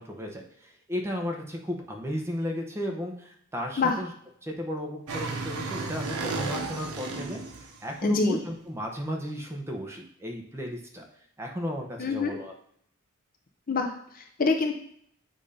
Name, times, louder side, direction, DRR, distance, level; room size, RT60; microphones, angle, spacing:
voice 1, 0.0-4.1 4.4-11.0 11.4-12.5, equal, 10° right, 1 dB, 0.9 m, -34 dB
sound 1, 5.1-7.9, right 3 dB, 80° right, 0.9 m, -33 dB
voice 2, 8.0-8.4 12.0-12.4 13.7-14.7, left 3 dB, 40° left, 4 dB, 0.6 m, -26 dB
7.7 x 2.8 x 5.0 m, 0.67 s
head